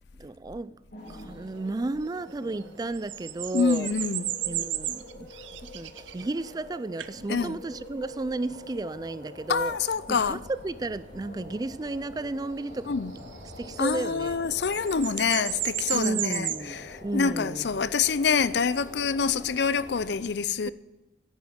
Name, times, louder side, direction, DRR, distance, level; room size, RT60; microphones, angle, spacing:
voice 1, 0.2-0.8 1.1-3.9 4.5-9.8 10.1-12.9 13.6-14.5 15.9-17.7, right 2 dB, 20° right, 0.3 m, -33 dB
sound 1, 0.9-20.2, left 1 dB, 50° left, 3.1 m, -46 dB
sound 2, 1.1-1.2 2.6-6.6 7.0-7.2 8.6-8.7 13.1-14.5 14.7-16.7 18.4-18.8, right 13 dB, 85° right, 0.7 m, -34 dB
voice 2, 3.5-4.3 7.3-7.6 9.5-10.4 12.9-13.1 13.8-20.7, left 5 dB, 70° left, 0.5 m, -26 dB
10.5 x 9.4 x 8.5 m
head